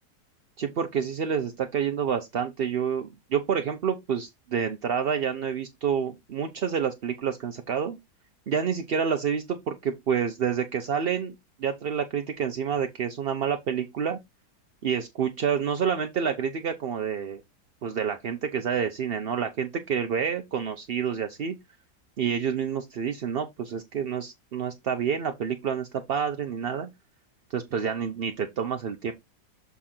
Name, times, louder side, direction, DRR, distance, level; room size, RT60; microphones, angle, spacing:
voice 1, 0.6-8.0 8.5-11.3 11.6-14.2 14.8-17.4 17.8-21.5 22.2-26.9 27.5-29.1, right 7 dB, 60° right, 0.6 m, -28 dB
7.0 x 3.7 x 4.3 m
omnidirectional pair, 1.8 m